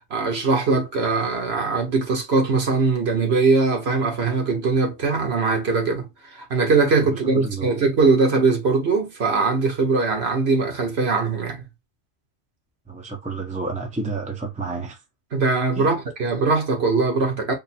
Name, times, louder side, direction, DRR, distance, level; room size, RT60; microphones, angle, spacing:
voice 1, 0.1-11.6 15.3-17.5, right 4 dB, 70° right, 1.4 m, -21 dB
voice 2, 7.1-7.7 12.9-15.0 15.7-16.0, right 3 dB, 10° right, 0.7 m, -30 dB
3.8 x 2.1 x 4.1 m
omnidirectional pair, 1.1 m